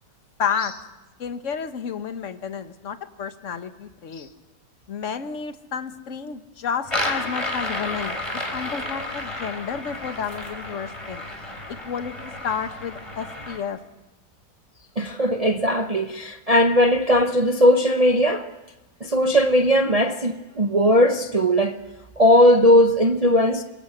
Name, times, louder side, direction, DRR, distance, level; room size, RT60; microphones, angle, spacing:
voice 1, 0.4-0.7 1.2-4.3 4.9-11.2 11.7-13.8, left 7 dB, 45° left, 1.5 m, -31 dB
sound 1, 6.8-13.6, left 1 dB, 15° left, 3.4 m, -31 dB
voice 2, 15.0-18.5 19.0-21.8 22.2-23.6, equal, 30° right, 0.7 m, -18 dB
25.5 x 22.0 x 7.9 m
omnidirectional pair, 1.9 m